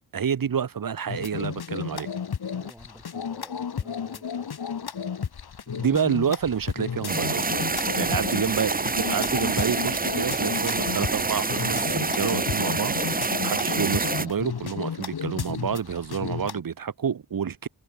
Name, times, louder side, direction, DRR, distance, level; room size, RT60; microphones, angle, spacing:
voice 1, 0.1-2.1 5.7-7.4 8.0-17.7, right 7 dB, 55° right, 0.9 m, -28 dB
sound 1, 1.1-16.6, left 7 dB, 65° left, 1.4 m, -33 dB
voice 2, 2.5-5.6, equal, 5° right, 6.1 m, -52 dB
sound 2, 7.1-14.3, right 3 dB, 20° right, 0.7 m, -27 dB
wide cardioid pair, 110°, 41 cm